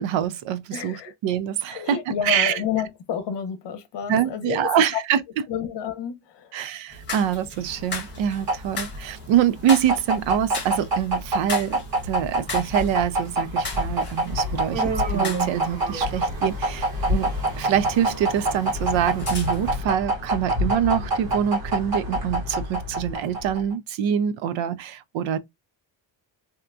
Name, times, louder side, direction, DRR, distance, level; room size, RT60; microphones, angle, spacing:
voice 1, 0.0-2.6 4.1-5.2 6.5-25.4, right 9 dB, 75° right, 0.6 m, -25 dB
voice 2, 0.7-1.1 1.7-5.0 5.5-6.5, left 8 dB, 65° left, 0.8 m, -30 dB
sound 1, 6.9-19.7, left 3 dB, 25° left, 1.4 m, -38 dB
sound 2, 7.7-23.7, right 1 dB, 50° right, 1.7 m, -26 dB
Human voice, 14.7-16.4, right 6 dB, 20° right, 0.4 m, -30 dB
3.4 x 2.8 x 2.3 m
cardioid pair, 170°, 46 cm